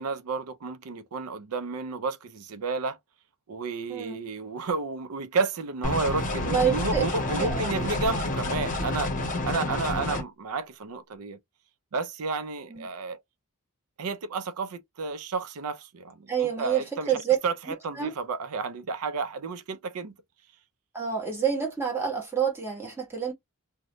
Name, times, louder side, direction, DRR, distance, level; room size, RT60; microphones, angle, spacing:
voice 1, 0.0-3.0 3.5-9.1 9.4-11.4 11.9-13.2 14.0-20.1, right 4 dB, 75° right, 0.5 m, -31 dB
voice 2, 3.9-4.2 6.5-7.0 7.4-7.7 9.5-9.8 12.7-12.9 16.3-17.4 18.0-18.1 20.9-23.3, right 8 dB, 10° right, 1.2 m, -28 dB
sound 1, 5.8-10.2, left 2 dB, 35° left, 0.8 m, -29 dB
2.6 x 2.2 x 3.0 m
head